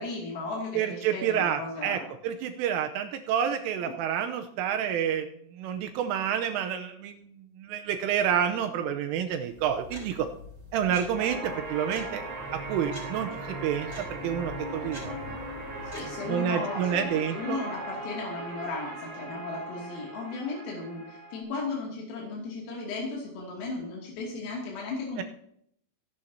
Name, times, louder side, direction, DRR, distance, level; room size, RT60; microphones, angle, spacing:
voice 1, 0.0-2.1 3.8-3.9 15.8-25.2, left 3 dB, 80° left, -3 dB, 5.3 m, -35 dB
voice 2, 0.7-10.3 10.7-12.2 12.5-15.5 16.3-17.6 25.2-25.3, right 9 dB, 85° right, 6 dB, 3.2 m, -29 dB
sound 1, 9.5-16.2, left 2 dB, 10° right, 5.2 m, -46 dB
sound 2, 11.1-21.4, right 2 dB, 45° right, 8.3 m, -38 dB
25.0 x 11.5 x 2.9 m, 0.69 s
omnidirectional pair, 5.9 m